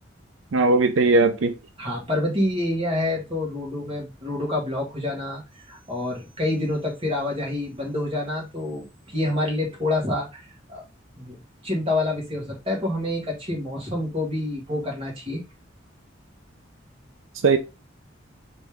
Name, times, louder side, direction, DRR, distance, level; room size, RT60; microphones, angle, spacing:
voice 1, 0.5-1.5 17.4-17.6, right 3 dB, 90° right, 0.5 m, -18 dB
voice 2, 1.8-10.8 11.2-11.4 11.6-15.4, left 1 dB, 30° right, 1.9 m, -27 dB
4.1 x 3.4 x 3.4 m
head